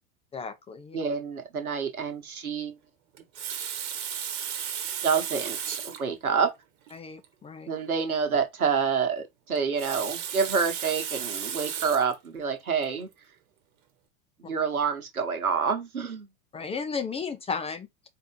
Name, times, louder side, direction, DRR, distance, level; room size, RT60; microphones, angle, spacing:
voice 1, 0.3-1.0 6.9-7.7 16.5-18.1, left 5 dB, 15° left, 0.4 m, -34 dB
voice 2, 0.9-2.7 5.0-6.5 7.7-13.1 14.4-16.3, right 6 dB, 85° right, 1.2 m, -28 dB
Water tap faucet, 3.2-6.1 6.9-7.0 7.2-7.3 9.6-12.2 12.8-13.0, right 8 dB, 55° right, 1.2 m, -34 dB
4.2 x 2.8 x 3.8 m
figure-of-eight pair, 85°, 42 cm